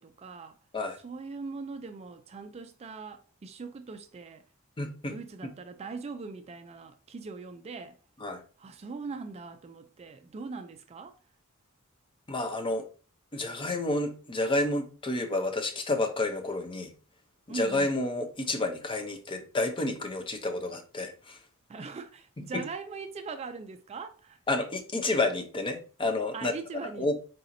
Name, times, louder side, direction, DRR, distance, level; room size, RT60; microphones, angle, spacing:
voice 1, 0.0-0.6 1.0-4.4 5.1-8.0 8.6-11.1 17.5-17.9 21.7-24.4 26.3-27.2, right 4 dB, 30° right, 0.3 m, -41 dB
voice 2, 4.8-5.2 5.4-5.5 8.2-8.4 12.3-12.8 13.3-16.9 17.5-21.4 22.4-22.6 24.5-26.5 27.0-27.2, left 2 dB, 25° left, 0.6 m, -30 dB
4.2 x 4.0 x 2.5 m
head